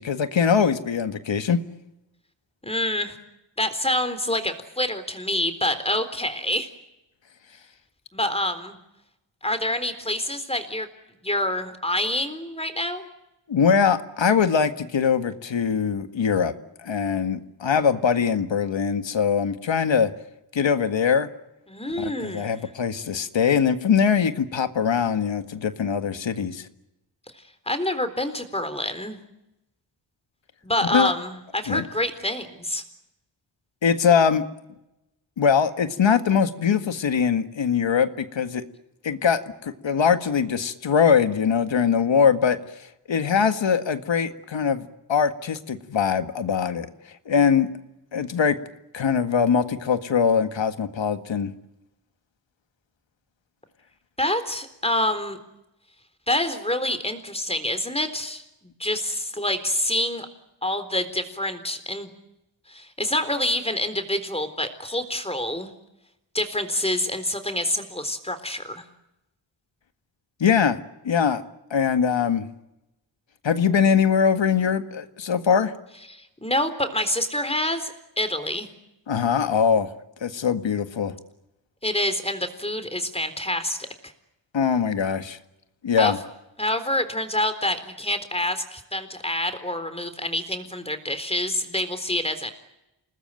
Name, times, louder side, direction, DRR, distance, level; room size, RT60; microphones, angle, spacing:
voice 1, 0.0-1.6 13.5-16.5 16.8-20.1 20.5-21.3 22.0-26.7 30.9-31.1 31.7-31.8 33.8-34.4 35.4-38.6 39.0-46.9 47.3-47.7 48.1-48.6 48.9-51.5 70.4-70.8 71.0-71.4 71.7-72.5 73.4-75.7 79.1-79.9 80.2-81.1 84.5-85.4 85.8-86.2, left 6 dB, 75° left, 9 dB, 1.9 m, -22 dB
voice 2, 2.6-3.2 3.6-6.7 8.1-8.8 9.4-10.9 11.2-13.1 21.7-22.6 27.7-29.2 30.6-32.8 43.4-43.5 54.2-55.4 56.3-60.3 60.6-62.1 62.7-65.7 66.3-68.8 76.1-78.7 81.8-83.8 86.0-86.1 86.6-92.5, left 1 dB, 15° left, 10 dB, 3.9 m, -27 dB
29.0 x 19.5 x 9.1 m, 0.90 s
wide cardioid pair, 90°, 45 cm